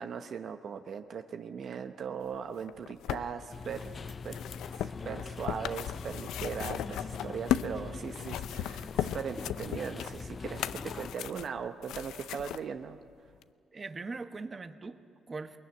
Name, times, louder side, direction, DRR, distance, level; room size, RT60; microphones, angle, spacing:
voice 1, 0.0-3.9 4.2-4.4 4.7-13.0, right 7 dB, 60° right, 7 dB, 0.9 m, -39 dB
sound 1, 2.6-7.8 8.1-12.6 13.4-13.5, left 11 dB, 85° left, 0.5 m, -36 dB
sound 2, 3.5-11.2, left 5 dB, 40° left, 0.5 m, -42 dB
voice 2, 13.7-15.6, right 3 dB, 30° right, 9 dB, 1.2 m, -41 dB
21.5 x 20.5 x 9.6 m, 2.2 s
cardioid pair, 90°, 0 cm